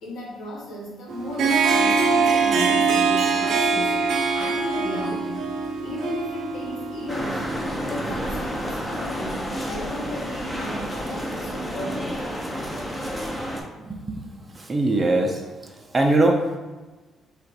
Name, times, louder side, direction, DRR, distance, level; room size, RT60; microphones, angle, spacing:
voice 1, 0.0-3.9 4.3-5.5 5.8-9.4 9.7-12.2, left 1 dB, 75° left, -3 dB, 1.2 m, -35 dB
Harp, 1.1-8.8, right 4 dB, 75° right, 0.7 m, -23 dB
sound 1, 7.1-13.6, equal, 5° left, 0.8 m, -30 dB
voice 2, 13.8-16.6, right 2 dB, 25° right, 1 dB, 0.6 m, -23 dB
3.8 x 2.5 x 4.7 m, 1.2 s
cardioid pair, 90°, 0 cm